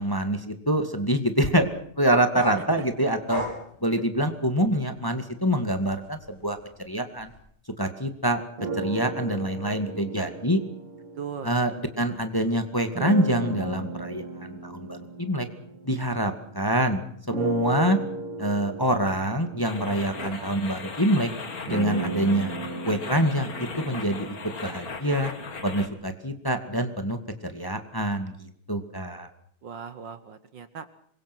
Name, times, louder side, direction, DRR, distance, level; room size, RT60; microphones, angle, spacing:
voice 1, 0.0-1.7 2.0-3.4 3.8-6.6 6.9-7.3 7.8-8.4 8.7-10.6 11.4-15.5 15.8-17.0 17.3-18.0 18.4-21.3 21.6-22.5 22.9-24.4 24.6-25.3 25.6-29.3, right 1 dB, 10° left, 7 dB, 1.9 m, -25 dB
voice 2, 2.3-2.8 11.2-11.5 20.1-20.6 29.6-30.9, right 7 dB, 60° right, 12 dB, 1.8 m, -39 dB
sound 1, 2.4-5.0 5.4-7.4, left 1 dB, 70° left, 7.9 m, -38 dB
sound 2, 8.6-12.1 12.9-16.7 17.3-25.3, right 3 dB, 90° right, 3.4 m, -36 dB
sound 3, 19.6-25.9, left 4 dB, 40° left, 2.5 m, -37 dB
27.0 x 23.0 x 6.2 m, 0.63 s
omnidirectional pair, 2.4 m